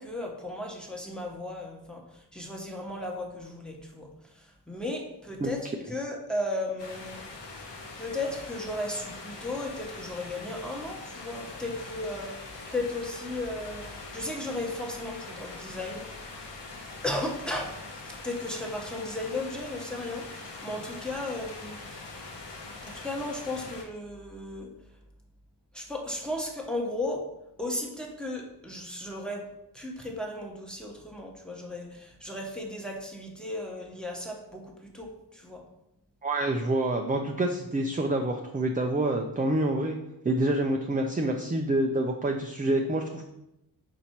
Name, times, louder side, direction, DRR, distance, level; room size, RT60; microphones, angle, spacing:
voice 1, 0.0-7.2 8.0-16.5 17.0-22.0 22.8-24.7 25.7-27.3 27.6-29.5 29.7-35.6, left 1 dB, ahead, 0 dB, 1.1 m, -35 dB
sound 1, 6.8-23.8, left 3 dB, 85° left, 1.2 m, -43 dB
voice 2, 36.2-40.0 40.2-43.2, right 1 dB, 20° right, 2 dB, 0.5 m, -27 dB
5.4 x 4.2 x 4.5 m, 0.86 s
wide cardioid pair, 90°, 41 cm